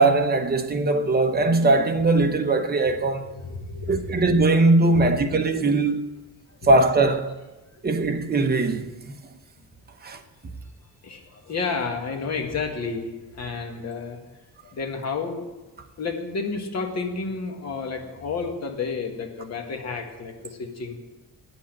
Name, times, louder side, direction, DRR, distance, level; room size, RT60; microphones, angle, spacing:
voice 1, 0.0-3.3 3.9-6.0 6.6-7.3 7.8-9.1 10.0-10.2, right 2 dB, 25° right, 1.0 m, -20 dB
voice 2, 3.2-4.0 4.9-5.7 6.6-6.7 7.7-7.8 11.0-14.2 14.6-15.4 16.0-21.0, left 4 dB, 50° left, 1.8 m, -31 dB
9.7 x 8.3 x 9.0 m
wide cardioid pair, 160°, 35 cm